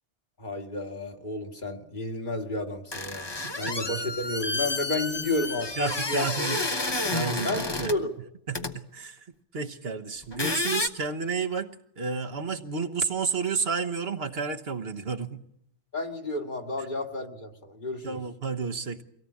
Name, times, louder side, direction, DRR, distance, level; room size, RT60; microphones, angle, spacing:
voice 1, 0.4-6.3 7.4-8.1 15.9-18.2, left 2 dB, 45° left, 3 dB, 2.0 m, -31 dB
sound 1, 2.9-8.0 8.5-8.7 10.2-10.9, left 2 dB, 25° left, 1.0 m, -30 dB
voice 2, 5.8-7.9 8.5-9.3 9.5-15.4 18.0-19.0, right 5 dB, 60° right, 5 dB, 1.4 m, -31 dB
24.0 x 18.0 x 8.5 m, 0.76 s
omnidirectional pair, 1.2 m